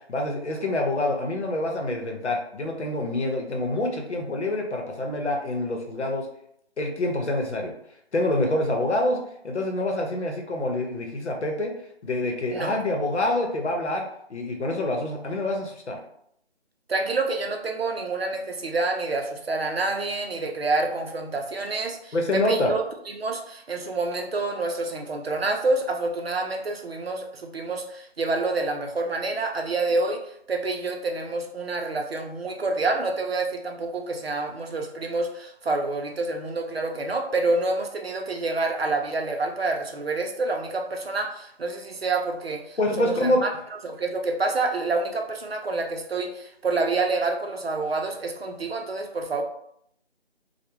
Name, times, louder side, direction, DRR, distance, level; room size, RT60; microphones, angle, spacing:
voice 1, 0.1-6.3 6.8-7.7 8.1-9.2 9.4-11.7 12.0-16.0 22.1-22.8 42.8-43.4, left 1 dB, 80° left, 1 dB, 0.8 m, -26 dB
voice 2, 16.9-22.8 23.1-30.2 30.5-43.5 43.8-49.4, right 3 dB, 65° right, 3 dB, 0.6 m, -27 dB
2.2 x 2.2 x 3.0 m, 0.71 s
figure-of-eight pair, 180°, 33 cm